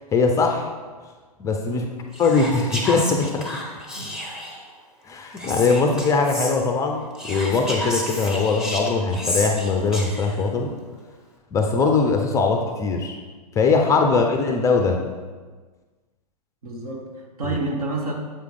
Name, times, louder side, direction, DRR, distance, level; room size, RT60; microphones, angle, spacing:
voice 1, 0.1-0.7 1.4-1.9 2.2-3.5 5.1-10.7 11.5-13.2 13.6-15.0 17.4-17.6, left 4 dB, 15° left, 3 dB, 0.4 m, -21 dB
voice 2, 1.7-2.0 3.9-4.1 16.6-18.1, right 3 dB, 65° right, 1 dB, 1.4 m, -30 dB
Whispering, 2.1-4.7 5.4-6.5 7.2-10.4, left 1 dB, 5° right, 0.8 m, -31 dB
7.5 x 4.8 x 3.4 m, 1.4 s
figure-of-eight pair, 115°, 20 cm